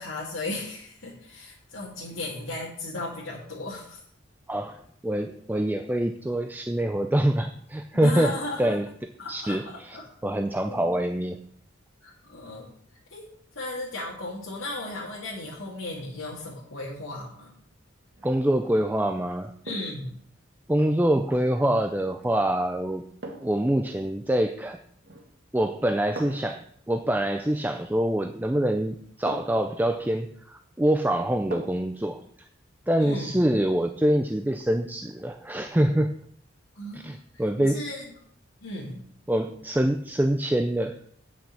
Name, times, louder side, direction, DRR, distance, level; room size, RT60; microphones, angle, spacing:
voice 1, 0.0-4.0 7.9-8.8 9.2-10.0 10.6-10.9 12.0-12.7 13.1-13.2 13.5-17.6 19.6-20.2 33.0-33.5 36.8-38.1 38.6-39.0, left 2 dB, 80° left, -6 dB, 2.3 m, -36 dB
voice 2, 4.5-8.9 9.3-10.0 10.2-11.4 18.2-19.5 20.7-23.1 23.4-24.8 25.5-32.5 32.9-36.2 36.9-37.8 39.3-41.0, right 1 dB, 10° right, 7 dB, 0.4 m, -25 dB
sound 1, 18.1-18.4 19.6-20.1 22.2-22.4 23.2-23.7 25.0-25.4 26.1-26.6 28.3-28.4 29.3-29.7 31.5-31.9 32.3-32.4, right 1 dB, 55° right, 1.8 m, -40 dB
8.8 x 5.8 x 7.5 m, 0.64 s
head